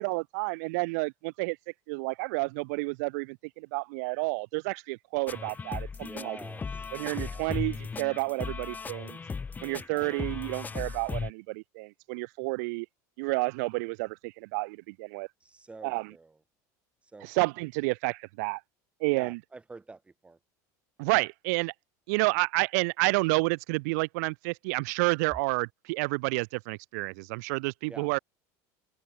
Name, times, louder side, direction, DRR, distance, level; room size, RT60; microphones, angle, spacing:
voice 1, 0.0-1.6 1.9-6.4 6.9-9.2 9.6-12.9 13.2-15.3 15.8-16.1 17.2-18.6 19.0-19.4 21.0-21.7 22.1-28.2, right 28 dB, 75° right, 0.6 m, -30 dB
sound 1, 5.3-11.3, left 5 dB, 20° left, 1.3 m, -37 dB
voice 2, 6.0-6.9 7.2-7.5 9.9-10.1 15.4-16.3 17.1-17.3 19.1-20.4 27.9-28.1, right 3 dB, 15° right, 1.6 m, -47 dB
open air
supercardioid pair, 120°, 9 cm